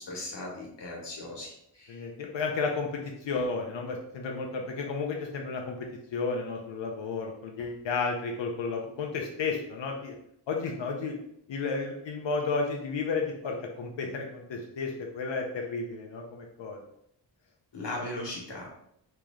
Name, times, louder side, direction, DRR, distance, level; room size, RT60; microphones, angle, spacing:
voice 1, 0.0-2.1 17.7-18.7, left 1 dB, 65° left, -2 dB, 1.4 m, -38 dB
voice 2, 1.9-10.1 10.5-11.1 11.5-16.8, left 4 dB, 85° left, 1 dB, 0.7 m, -32 dB
3.2 x 2.9 x 3.6 m, 0.73 s
wide cardioid pair, 140°, 44 cm